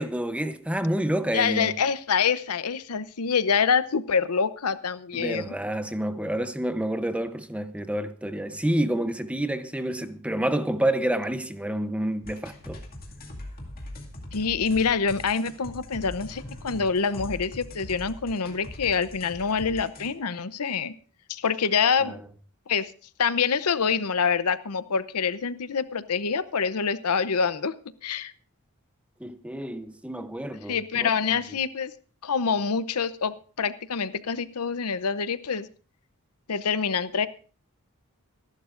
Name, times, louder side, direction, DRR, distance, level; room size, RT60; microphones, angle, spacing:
voice 1, 0.0-1.7 5.1-12.8 22.0-22.2 29.2-31.4, right 1 dB, 5° right, 0.7 m, -29 dB
voice 2, 1.3-5.5 14.3-20.9 21.3-22.2 22.7-22.9 23.2-27.7 28.0-28.3 30.7-31.9 32.2-35.7 36.5-37.3, left 6 dB, 85° left, 0.7 m, -26 dB
sound 1, 12.2-20.1, left 1 dB, 40° left, 2.2 m, -41 dB
25.0 x 11.5 x 2.5 m
head